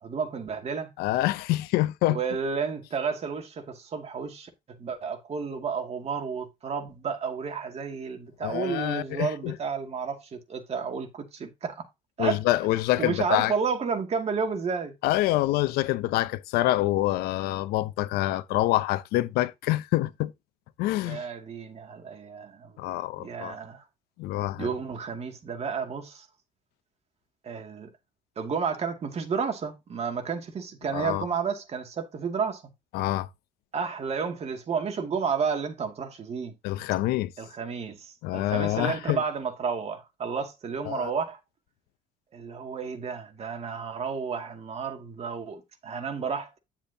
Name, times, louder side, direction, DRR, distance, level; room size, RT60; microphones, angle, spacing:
voice 1, 0.0-0.9 2.1-4.5 4.8-11.9 12.2-12.4 13.0-14.9 21.0-22.7 23.2-23.8 24.6-26.3 27.4-27.9 28.4-32.6 33.7-36.6 37.4-41.4 42.3-46.6, right 6 dB, 40° right, 2.5 m, -31 dB
voice 2, 1.0-2.2 8.4-9.5 12.2-13.5 15.0-20.3 20.8-21.2 22.8-23.6 24.2-24.7 30.9-31.3 32.9-33.3 36.6-37.3 38.2-39.2 40.9-41.1, left 16 dB, 85° left, 0.8 m, -26 dB
10.5 x 7.2 x 2.9 m
cardioid pair, 100°, 16 cm